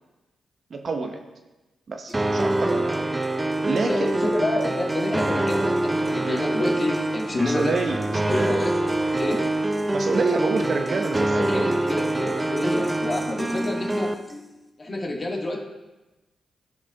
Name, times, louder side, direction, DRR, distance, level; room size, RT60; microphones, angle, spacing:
voice 1, 0.7-1.2 1.9-3.1 3.7-4.1 6.3-6.4 7.5-8.0 8.3-8.5 9.9-11.7, right 4 dB, 55° right, 4 dB, 0.8 m, -27 dB
sound 1, 2.1-14.7, left 1 dB, ahead, 1.2 m, -42 dB
sound 2, 2.1-14.1, right 1 dB, 25° right, 0.4 m, -25 dB
voice 2, 3.8-7.8 8.3-8.7 9.2-9.4 11.3-14.1 14.8-15.6, left 2 dB, 40° left, 0 dB, 1.7 m, -28 dB
sound 3, 8.6-14.0, left 2 dB, 65° left, 1.9 m, -47 dB
13.5 x 4.9 x 2.4 m, 1.1 s
supercardioid pair, 40°, 0 cm